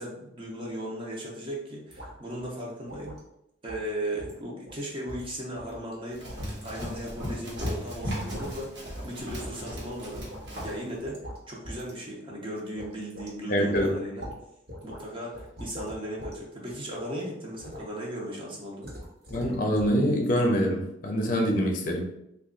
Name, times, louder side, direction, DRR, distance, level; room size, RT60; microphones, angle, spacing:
voice 1, 0.0-3.2 3.6-10.3 10.6-14.3 14.8-18.9, equal, 30° right, -3 dB, 0.7 m, -37 dB
sound 1, 1.9-2.1 2.4-2.5 2.9-3.2 3.7-3.9 4.2-4.4 4.7-4.8 5.1-5.9 6.3-7.0 7.5-7.7 8.0-8.5 9.0-9.1 9.4-10.8 11.0-11.4 11.6-11.9 12.3-12.4 12.8-13.3 13.7-14.4 14.7-15.0 15.3-16.4 16.7-17.0 17.6-17.8 18.8-20.0 20.2-20.4, equal, 60° right, 1.0 m, -42 dB
Run, 6.1-10.8, equal, 75° right, 1.2 m, -36 dB
voice 2, 13.5-14.1 19.3-22.0, equal, 50° left, 2 dB, 0.6 m, -25 dB
3.0 x 2.4 x 3.7 m, 0.80 s
head